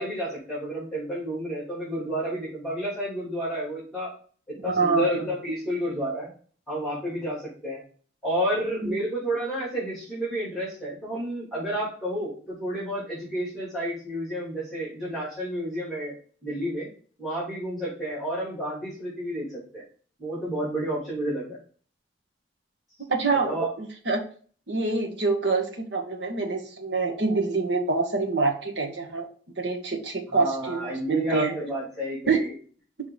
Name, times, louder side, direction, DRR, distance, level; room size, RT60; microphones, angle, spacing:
voice 1, 0.0-4.1 4.6-6.3 6.7-7.8 8.2-16.1 16.4-16.9 17.2-19.8 20.2-21.6 23.4-23.7 30.3-32.5, right 1 dB, ahead, -7 dB, 3.2 m, -30 dB
voice 2, 4.6-5.3 8.8-9.0 23.1-24.2 24.7-29.3 29.6-31.6 32.3-32.4, right 4 dB, 65° right, 2 dB, 1.3 m, -26 dB
6.3 x 3.8 x 4.0 m, 0.43 s
head